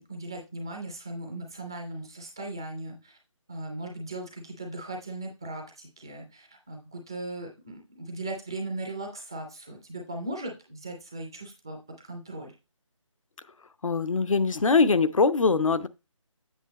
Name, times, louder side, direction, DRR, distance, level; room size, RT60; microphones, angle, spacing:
voice 1, 0.0-3.2 3.5-12.5, right 2 dB, 10° right, 0.4 m, -38 dB
voice 2, 13.8-15.9, left 4 dB, 75° left, 0.7 m, -22 dB
8.1 x 6.0 x 2.9 m
figure-of-eight pair, 155°, 17 cm